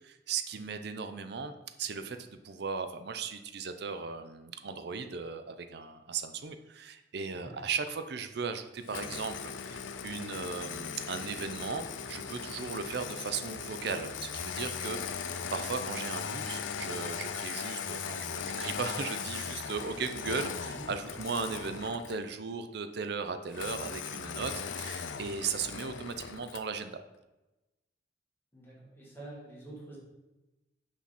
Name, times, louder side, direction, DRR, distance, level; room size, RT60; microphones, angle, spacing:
voice 1, 0.0-26.9, right 5 dB, 60° right, 9 dB, 0.5 m, -37 dB
Engine starting, 8.9-22.3 23.5-26.7, left 6 dB, 90° left, 0.5 m, -38 dB
voice 2, 28.5-30.0, right 1 dB, 10° left, -6 dB, 2.1 m, -47 dB
6.0 x 5.7 x 4.2 m, 1.0 s
head